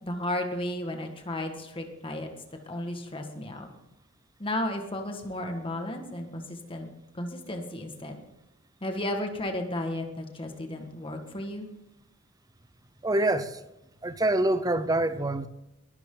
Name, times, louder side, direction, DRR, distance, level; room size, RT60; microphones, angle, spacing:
voice 1, 0.0-2.3 2.7-3.7 4.4-6.9 7.1-8.2 8.8-11.7, left 1 dB, 25° left, 1.8 m, -33 dB
voice 2, 13.0-13.6 14.0-15.5, right 1 dB, 20° right, 0.7 m, -25 dB
21.0 x 12.5 x 3.9 m
head